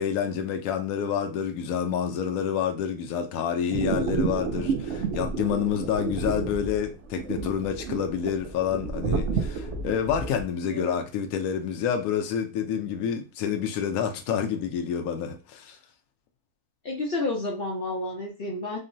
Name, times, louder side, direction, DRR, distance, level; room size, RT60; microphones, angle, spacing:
voice 1, 0.0-15.8, left 8 dB, 70° left, 1.0 m, -28 dB
sound 1, 3.7-10.4, right 5 dB, 70° right, 0.7 m, -30 dB
voice 2, 16.8-18.8, left 2 dB, 55° left, 0.6 m, -30 dB
3.7 x 2.1 x 2.5 m
omnidirectional pair, 1.7 m